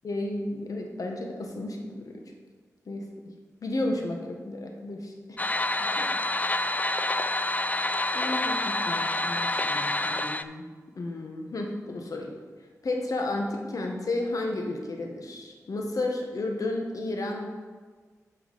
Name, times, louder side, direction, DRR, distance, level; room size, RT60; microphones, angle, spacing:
voice 1, 0.0-2.2 2.9-3.0 3.6-5.1 6.0-6.1 8.1-10.7 10.9-12.3 12.8-17.5, left 2 dB, 70° left, 2 dB, 1.4 m, -32 dB
sound 1, 5.4-10.4, left 2 dB, 25° left, 0.4 m, -27 dB
9.8 x 5.7 x 4.2 m, 1.5 s
cardioid pair, 50°, 6 cm